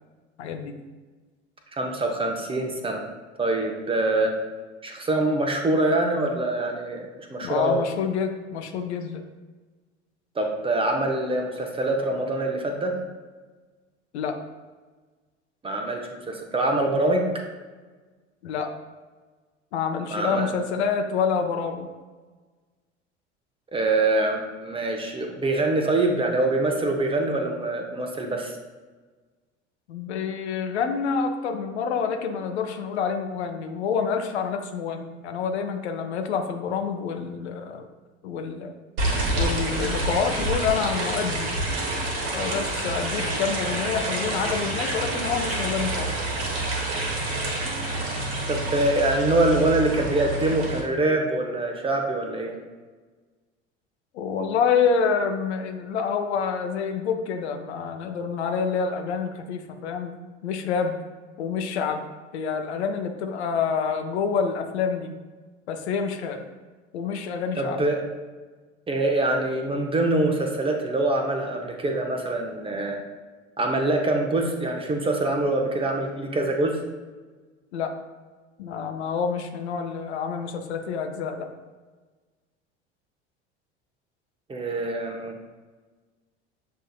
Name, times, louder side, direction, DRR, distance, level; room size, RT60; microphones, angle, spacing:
voice 1, 0.4-0.8 7.4-9.2 14.1-14.4 18.4-18.7 19.7-21.9 29.9-37.9 38.2-38.7 39.3-41.5 42.3-46.1 54.1-60.2 60.4-61.0 61.4-62.0 62.3-65.1 65.7-66.4 66.9-67.8 77.7-77.9 78.6-81.5, left 6 dB, 70° left, 5 dB, 0.6 m, -27 dB
voice 2, 1.8-3.0 3.4-4.3 4.8-7.8 10.4-12.9 15.6-16.0 16.3-17.2 20.1-20.5 23.7-28.5 48.5-52.5 67.6-68.0 68.9-73.0 73.6-76.8 84.5-85.3, right 2 dB, 15° right, 2 dB, 0.6 m, -24 dB
sound 1, 39.0-50.8, right 2 dB, 55° right, 1.3 m, -28 dB
7.4 x 2.6 x 2.3 m, 1.3 s
figure-of-eight pair, 70°, 35 cm